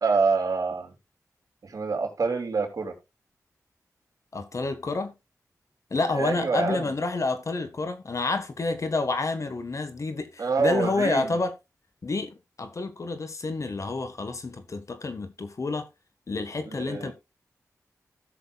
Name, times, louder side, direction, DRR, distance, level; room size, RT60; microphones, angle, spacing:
voice 1, 0.0-0.9 1.6-2.9 6.2-6.9 10.4-11.4 16.7-17.1, right 4 dB, 65° right, 3.1 m, -26 dB
voice 2, 4.3-5.1 5.9-11.5 12.0-15.9 16.3-17.1, left 3 dB, 55° left, 1.5 m, -29 dB
17.0 x 6.5 x 2.4 m
wide cardioid pair, 70°, 6 cm